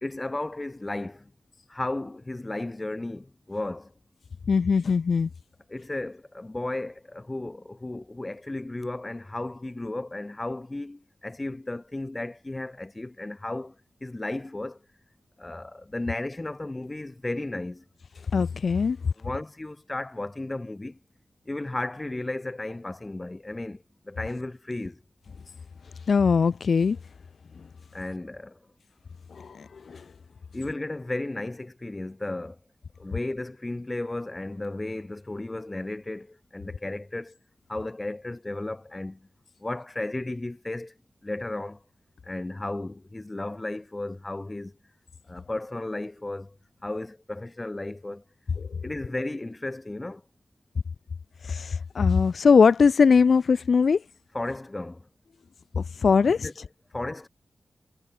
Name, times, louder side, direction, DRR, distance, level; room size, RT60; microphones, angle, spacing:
voice 1, 0.0-1.2 1.7-3.8 5.7-13.7 14.0-14.8 15.4-17.8 19.2-20.9 21.5-23.8 24.1-24.9 27.9-28.5 30.5-32.5 33.0-36.3 36.5-37.3 37.7-39.2 39.6-40.9 41.2-41.8 42.3-44.7 45.3-46.5 46.8-48.2 48.8-50.2 54.3-55.0 56.4-56.5 56.9-57.3, left 2 dB, 20° left, 1.7 m, -34 dB
voice 2, 4.5-5.3 18.3-19.0 26.1-27.0 29.3-30.1 48.7-48.8 51.4-54.0 55.7-56.5, left 5 dB, 65° left, 0.4 m, -21 dB
wide cardioid pair, 125°, 0 cm